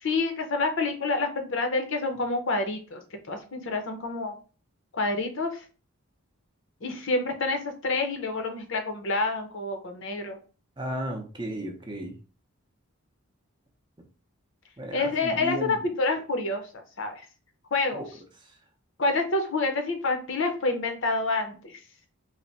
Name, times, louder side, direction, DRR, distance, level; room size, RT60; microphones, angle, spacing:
voice 1, 0.0-3.0 3.3-4.4 4.9-5.6 6.8-10.4 14.9-17.3 17.7-18.0 19.0-21.8, left 3 dB, 55° left, 6 dB, 0.7 m, -28 dB
voice 2, 10.8-12.1 14.8-15.8 17.9-18.1, equal, 20° right, 3 dB, 0.6 m, -34 dB
3.3 x 2.1 x 4.0 m, 0.36 s
head